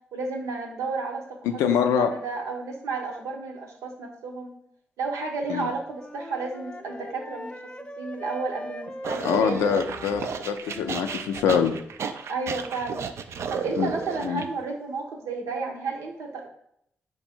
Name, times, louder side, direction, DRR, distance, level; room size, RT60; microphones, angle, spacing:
voice 1, 0.1-4.5 5.0-7.6 8.0-9.6 12.3-13.1 13.5-16.5, right 4 dB, 80° right, 2 dB, 0.7 m, -32 dB
voice 2, 1.5-2.1 5.5-5.7 9.2-11.8 13.8-13.9 14.2-14.4, left 7 dB, 85° left, 7 dB, 0.4 m, -24 dB
Wind instrument woodwind instrument, 5.9-11.4, left 1 dB, 25° left, 0.5 m, -40 dB
sound 1, 9.0-14.4, right 6 dB, 65° right, 0.3 m, -33 dB
4.6 x 2.6 x 4.2 m, 0.72 s
supercardioid pair, 40°, 5 cm